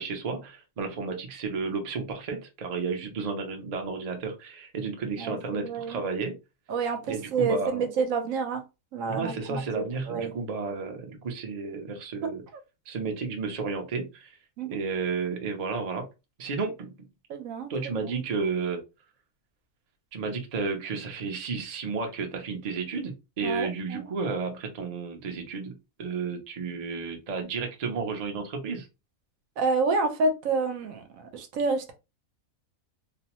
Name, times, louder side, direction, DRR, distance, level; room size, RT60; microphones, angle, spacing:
voice 1, 0.0-6.4 7.1-7.8 9.0-12.4 12.9-14.4 14.7-16.1 16.4-16.9 17.7-18.8 20.1-28.9, right 4 dB, 55° right, 3 dB, 0.4 m, -32 dB
voice 2, 5.2-6.0 6.7-8.6 8.9-10.3 14.6-14.8 17.3-18.1 23.4-24.0 29.6-31.9, right 4 dB, 70° right, 6 dB, 0.9 m, -29 dB
2.6 x 2.0 x 2.9 m, 0.26 s
omnidirectional pair, 1.6 m